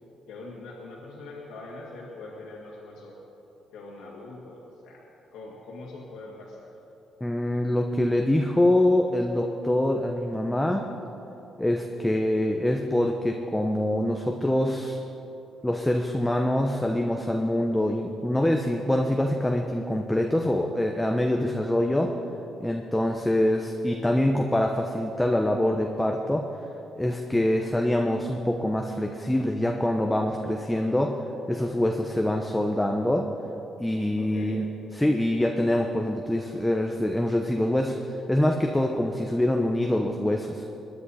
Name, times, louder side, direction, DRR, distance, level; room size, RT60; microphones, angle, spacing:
voice 1, 0.3-3.2 3.7-5.1 5.3-6.8 34.2-34.7, left 2 dB, 90° left, -4 dB, 2.2 m, -42 dB
voice 2, 7.2-10.9 11.6-15.0 15.6-22.1 22.6-26.5 26.9-31.2 31.5-33.3 33.8-34.6 34.9-40.6, left 1 dB, 10° left, 2 dB, 0.9 m, -25 dB
23.0 x 10.0 x 4.3 m, 3.0 s
cardioid pair, 90°, 0 cm